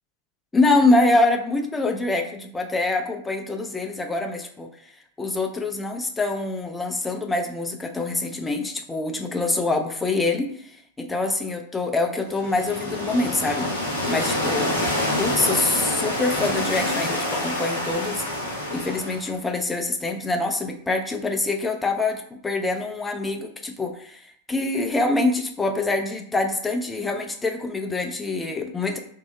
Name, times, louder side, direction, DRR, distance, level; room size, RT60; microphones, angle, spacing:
voice 1, 0.5-4.7 5.2-10.7 11.0-13.7 14.1-14.7 15.2-18.2 18.7-24.2 24.5-29.0, left 2 dB, 10° left, 4 dB, 0.4 m, -25 dB
sound 1, 12.3-19.4, left 1 dB, 70° left, 0.8 m, -27 dB
2.7 x 2.0 x 3.7 m, 0.63 s
figure-of-eight pair, 90°, 0 cm